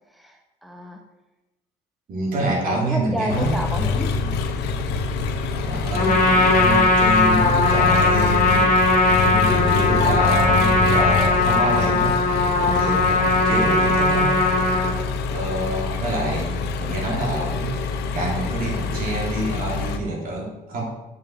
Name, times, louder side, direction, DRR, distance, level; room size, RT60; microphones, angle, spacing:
voice 1, 0.2-1.0 2.6-4.2 16.1-16.2, equal, ahead, 3 dB, 0.9 m, -30 dB
voice 2, 2.1-3.6 5.5-8.7 9.2-14.3 15.3-20.8, right 2 dB, 55° right, -1 dB, 3.1 m, -27 dB
Engine, 3.3-20.0, left 4 dB, 80° left, 0.9 m, -26 dB
Trumpet, 5.9-14.9, left 3 dB, 50° left, 2.2 m, -19 dB
7.8 x 5.6 x 6.3 m, 1.0 s
cardioid pair, 110°, 17 cm